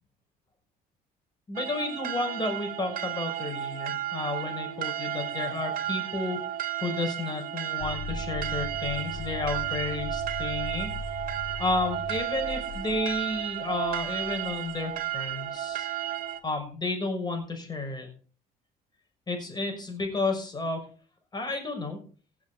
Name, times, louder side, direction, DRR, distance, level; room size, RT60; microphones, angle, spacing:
voice 1, 1.5-6.4 6.8-10.9 11.6-15.9 16.4-18.1 19.3-20.8 21.3-22.0, left 2 dB, 25° left, 4 dB, 6.1 m, -32 dB
sound 1, 1.6-16.4, right 12 dB, 55° right, 1.7 m, -33 dB
sound 2, 7.8-15.4, left 2 dB, 85° left, 2.9 m, -39 dB
16.0 x 7.8 x 5.9 m, 0.41 s
cardioid pair, 110°, 17 cm